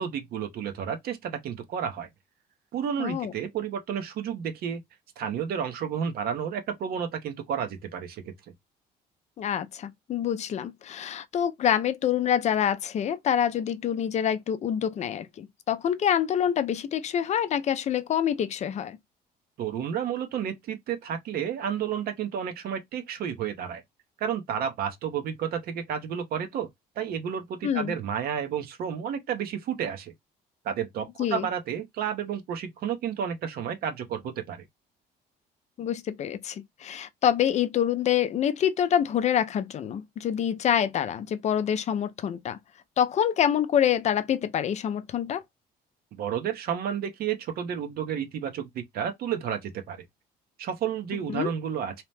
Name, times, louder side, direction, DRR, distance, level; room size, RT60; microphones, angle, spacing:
voice 1, 0.0-2.1 2.7-4.8 5.2-8.3 19.6-23.8 24.2-26.7 27.0-30.1 30.6-34.7 46.1-50.0 50.6-52.0, right 8 dB, 65° right, 0.7 m, -31 dB
voice 2, 3.0-3.3 9.4-19.0 27.6-27.9 31.2-31.5 35.8-42.6 43.0-45.4 51.3-51.5, left 9 dB, 40° left, 0.5 m, -26 dB
2.8 x 2.0 x 3.2 m
cardioid pair, 110°, 17 cm